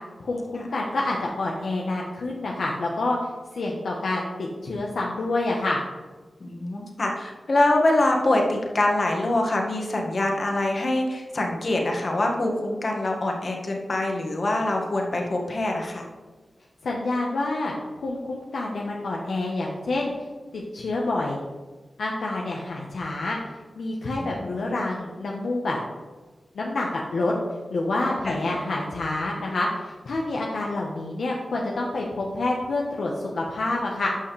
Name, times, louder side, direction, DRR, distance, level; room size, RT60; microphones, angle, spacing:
voice 1, 0.2-5.8 16.8-20.1 20.5-21.4 22.0-23.4 23.8-25.8 26.5-27.3 27.7-34.1, left 2 dB, 85° left, -2 dB, 1.0 m, -28 dB
voice 2, 6.4-16.0 24.3-24.5 28.2-28.3, left 1 dB, 60° left, 0 dB, 1.8 m, -24 dB
12.0 x 5.7 x 3.3 m, 1.3 s
cardioid pair, 45°, 0 cm